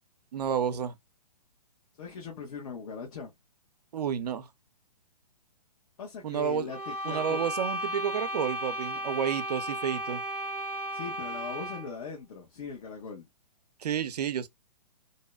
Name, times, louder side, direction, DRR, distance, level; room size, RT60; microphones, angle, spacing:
voice 1, 0.3-0.9 3.9-4.5 6.2-6.7 7.0-10.2 13.8-14.5, right 8 dB, 70° right, 0.6 m, -30 dB
voice 2, 2.0-3.3 6.0-7.4 10.9-13.3, left 5 dB, 55° left, 1.0 m, -40 dB
sound 1, 6.7-12.0, equal, 5° right, 0.5 m, -35 dB
2.7 x 2.1 x 2.2 m
hypercardioid pair, 135°, 21 cm